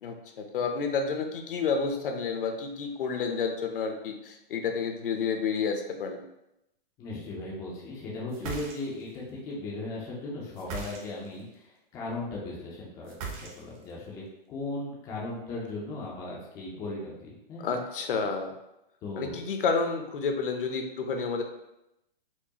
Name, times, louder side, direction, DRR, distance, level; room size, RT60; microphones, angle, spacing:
voice 1, 0.0-6.2 17.6-18.5 19.2-21.4, left 5 dB, 65° left, 5 dB, 0.7 m, -30 dB
voice 2, 7.0-17.7 19.0-19.5, left 2 dB, 10° left, -4 dB, 0.4 m, -37 dB
sound 1, 8.3-9.2 10.5-11.4 13.1-13.9, right 5 dB, 35° right, 0.7 m, -39 dB
4.5 x 2.3 x 2.8 m, 0.85 s
hypercardioid pair, 145°, 29 cm